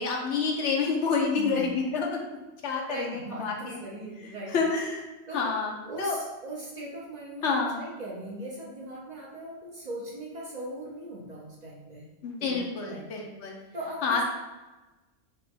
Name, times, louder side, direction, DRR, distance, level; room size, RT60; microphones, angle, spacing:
voice 1, 0.0-2.3 2.6-3.8 4.2-5.1 5.3-6.2 7.4-7.8 12.2-13.6 14.0-14.2, left 4 dB, 75° left, 1 dB, 1.0 m, -28 dB
voice 2, 1.4-1.8 2.9-4.6 5.3-5.5 5.8-12.1 12.4-13.1 13.7-14.2, right 1 dB, 45° right, -4 dB, 0.7 m, -39 dB
4.3 x 2.9 x 3.5 m, 1.1 s
omnidirectional pair, 1.2 m